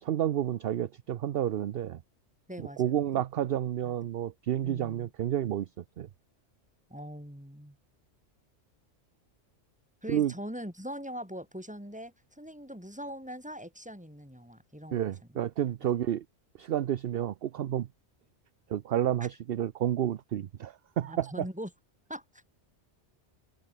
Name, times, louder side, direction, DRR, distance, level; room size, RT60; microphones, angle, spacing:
voice 1, 0.0-2.0 2.8-5.7 6.0-6.1 10.1-10.3 14.9-16.2 16.6-17.9 18.7-21.3, right 11 dB, 60° right, 0.8 m, -30 dB
voice 2, 2.5-3.2 3.8-4.0 4.6-5.1 6.9-7.8 10.0-15.4 15.8-15.9 19.2-19.3 21.0-21.7 22.1-22.7, equal, 5° right, 5.5 m, -42 dB
omnidirectional pair, 1.2 m